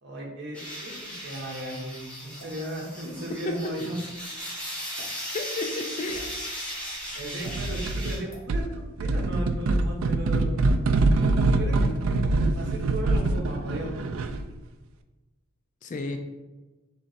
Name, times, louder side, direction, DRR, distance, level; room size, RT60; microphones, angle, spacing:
voice 1, 0.0-4.0 7.1-14.0, right 1 dB, 55° right, -1 dB, 1.0 m, -36 dB
sound 1, 0.5-8.2, equal, 5° left, 1.0 m, -37 dB
sound 2, 2.4-2.6 3.5-3.6 4.9-5.1 6.1-6.3 7.4-7.6 8.3-8.5, equal, 55° left, 1.3 m, -46 dB
voice 2, 5.3-6.2 15.8-16.2, left 3 dB, 35° left, 6 dB, 0.3 m, -32 dB
sound 3, 7.5-8.2 8.5-14.5, right 2 dB, 70° right, 0.3 m, -24 dB
3.8 x 3.1 x 4.0 m, 1.2 s
head